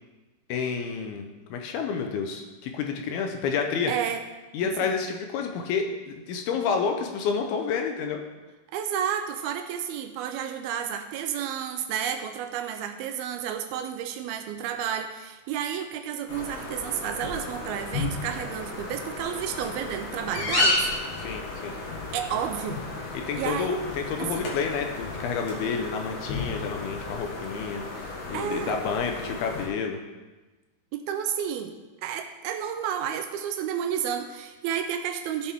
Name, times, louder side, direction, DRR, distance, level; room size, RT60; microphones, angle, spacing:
voice 1, 0.5-3.9 4.5-8.2 21.2-21.7 23.1-30.0, left 5 dB, 80° left, 4 dB, 2.7 m, -29 dB
voice 2, 3.9-4.2 4.6-4.9 8.7-20.8 22.1-22.8 23.4-23.8 24.2-24.5 28.3-28.8 30.9-31.8 32.0-35.5, right 9 dB, 80° right, 6 dB, 2.4 m, -31 dB
sound 1, 16.3-29.7, left 2 dB, 60° left, 2.8 m, -33 dB
15.0 x 6.9 x 3.6 m, 1.2 s
omnidirectional pair, 4.6 m